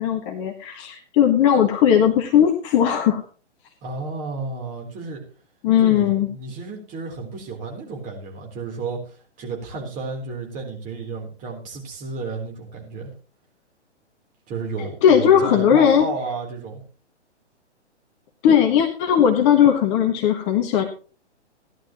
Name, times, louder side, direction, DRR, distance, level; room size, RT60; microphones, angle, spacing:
voice 1, 0.0-3.2 5.6-6.3 15.0-16.0 18.4-20.8, left 9 dB, 25° left, 2 dB, 1.4 m, -17 dB
voice 2, 3.8-5.2 5.8-13.1 14.5-16.8, right 4 dB, 20° right, 0 dB, 3.8 m, -32 dB
16.5 x 11.5 x 3.1 m, 0.37 s
figure-of-eight pair, 125°, 35 cm